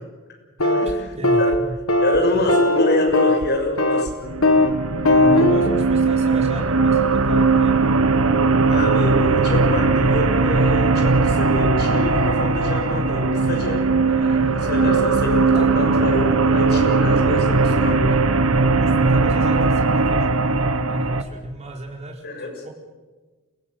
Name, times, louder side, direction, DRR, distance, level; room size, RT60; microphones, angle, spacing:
sound 1, 0.6-0.9 1.2-1.6 1.9-2.2 2.5-3.5 3.8-4.1 4.4-4.7 5.0-5.7, left 2 dB, 90° left, 1.7 m, -17 dB
voice 1, 0.6-1.8 5.2-7.9 8.5-9.1 15.5-16.0 18.5-22.2 22.6-22.7, right 1 dB, 35° right, 1 dB, 4.5 m, -34 dB
voice 2, 2.0-4.1 8.7-18.2 22.2-22.6, left 2 dB, 50° left, 2 dB, 6.4 m, -26 dB
sound 2, 4.2-21.2, right 3 dB, 85° right, 1.3 m, -19 dB
29.0 x 17.0 x 7.8 m, 1.3 s
head